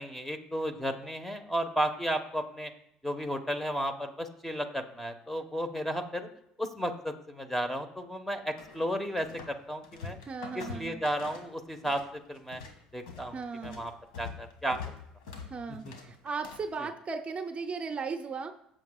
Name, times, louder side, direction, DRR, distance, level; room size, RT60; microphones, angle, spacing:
voice 1, 0.0-2.7 3.0-6.3 6.6-10.2 10.5-12.6 12.9-13.9 14.2-14.8 15.7-15.9 16.8-16.9, equal, 5° left, 8 dB, 1.3 m, -33 dB
sound 1, 8.6-9.6 9.8-12.1 12.4-16.8, left 5 dB, 80° left, 1.9 m, -44 dB
voice 2, 10.2-11.0 13.3-13.8 15.5-18.5, right 4 dB, 35° right, 7 dB, 0.8 m, -36 dB
14.5 x 7.5 x 2.4 m, 0.78 s
hypercardioid pair, 70°, 3 cm